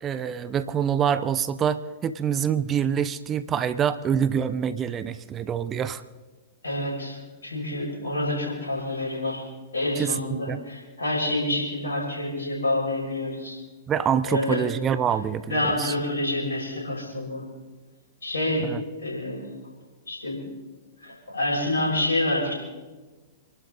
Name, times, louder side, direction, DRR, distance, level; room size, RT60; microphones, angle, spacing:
voice 1, 0.0-6.0 10.0-10.6 13.9-15.9 18.6-18.8, right 8 dB, 25° right, 13 dB, 0.8 m, -26 dB
voice 2, 6.6-9.4 9.7-13.6 14.3-14.6 15.5-17.4 18.2-18.7 19.0-19.5 20.1-20.4 21.0-22.5, left 1 dB, 80° left, -3 dB, 6.7 m, -27 dB
27.5 x 12.0 x 4.1 m, 1.2 s
figure-of-eight pair, 105°, 0 cm